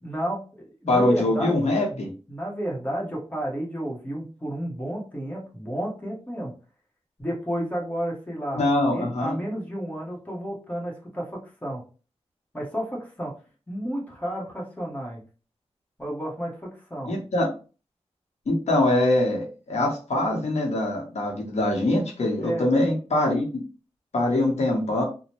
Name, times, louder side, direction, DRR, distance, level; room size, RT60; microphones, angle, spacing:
voice 1, 0.0-1.6 1.9-6.5 7.2-11.8 12.5-13.3 13.7-15.2 16.0-17.1 22.4-22.7, right 1 dB, 15° left, -2 dB, 1.1 m, -32 dB
voice 2, 0.9-2.1 8.5-9.3 17.1-17.5 18.5-23.5 24.1-25.0, left 1 dB, 85° left, -1 dB, 0.9 m, -23 dB
3.0 x 2.1 x 2.9 m, 0.36 s
wide cardioid pair, 85°, 11 cm